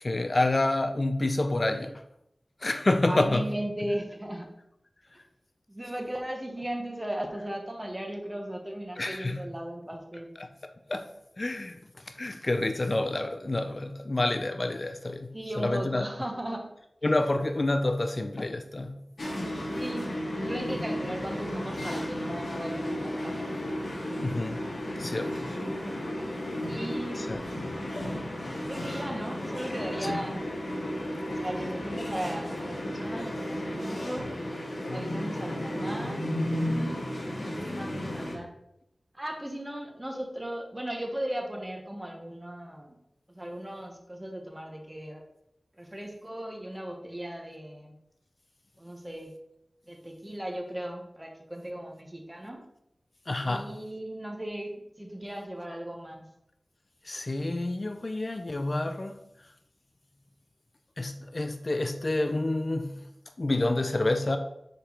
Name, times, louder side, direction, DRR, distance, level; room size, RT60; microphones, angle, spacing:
voice 1, 0.0-2.0 2.6-3.4 9.0-9.4 10.4-10.5 10.9-11.1 11.4-16.1 17.0-18.9 24.2-24.7 25.0-25.5 27.2-27.4 30.0-30.1 53.3-53.7 57.0-59.2 61.0-63.0 63.4-64.4, left 2 dB, 45° left, 7 dB, 0.5 m, -28 dB
voice 2, 3.0-4.5 5.7-10.3 15.3-16.7 19.7-20.1 20.4-23.6 25.4-26.0 26.6-27.3 28.3-30.4 31.3-34.3 34.9-36.2 36.5-37.0 37.4-38.5 39.1-43.0 43.3-45.2 45.8-48.0 48.8-49.3 49.9-52.7 53.4-56.3, right 1 dB, 20° right, 2 dB, 1.2 m, -37 dB
sound 1, 19.2-38.3, left 1 dB, 65° left, 2.0 m, -33 dB
5.1 x 4.4 x 5.0 m, 0.81 s
wide cardioid pair, 65°, 0 cm